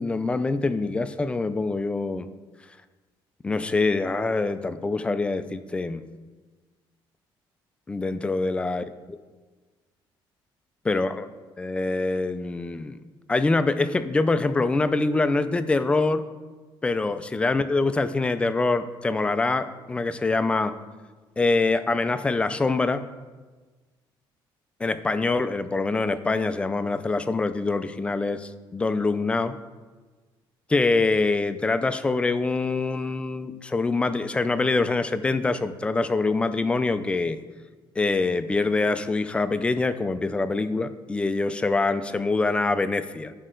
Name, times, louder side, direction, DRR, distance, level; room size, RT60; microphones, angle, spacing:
voice 1, 0.0-2.3 3.4-6.1 7.9-9.2 10.9-11.3 11.6-13.0 13.3-16.2 16.8-20.7 21.4-23.0 24.8-29.6 30.7-37.4 38.0-43.3, left 3 dB, 10° left, 11 dB, 0.3 m, -25 dB
11.5 x 5.3 x 3.8 m, 1.3 s
cardioid pair, 165°, 9 cm